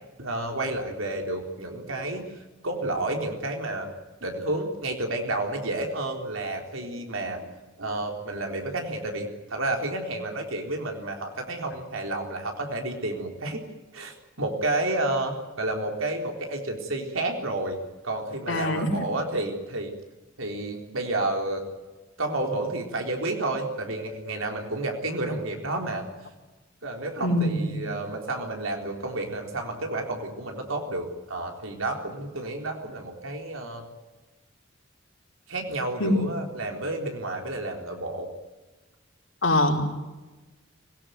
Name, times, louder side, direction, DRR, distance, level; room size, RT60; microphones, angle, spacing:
voice 1, 0.2-2.4 2.6-3.9 4.2-7.5 7.8-13.6 13.9-17.8 18.0-19.9 20.4-21.6 22.2-26.1 26.8-33.8 35.5-38.3, right 2 dB, 85° right, 2 dB, 3.9 m, -30 dB
voice 2, 18.5-18.9 27.2-27.7 36.0-36.1 39.4-39.8, left 1 dB, 70° left, 1 dB, 4.9 m, -23 dB
25.0 x 18.5 x 9.3 m, 1.2 s
head